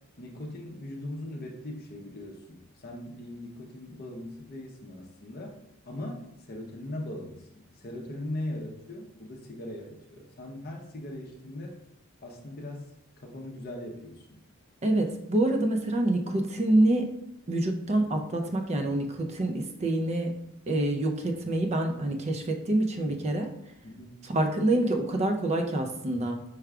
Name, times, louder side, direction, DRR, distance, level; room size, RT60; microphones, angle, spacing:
voice 1, 0.2-5.6 5.9-11.7 12.2-12.9 13.2-14.4 23.8-24.2, left 1 dB, 45° left, 0 dB, 0.6 m, -40 dB
voice 2, 14.8-17.1 17.5-20.3 20.7-23.5 24.2-26.4, right 1 dB, 30° right, 4 dB, 0.4 m, -26 dB
4.7 x 2.2 x 4.7 m, 0.79 s
head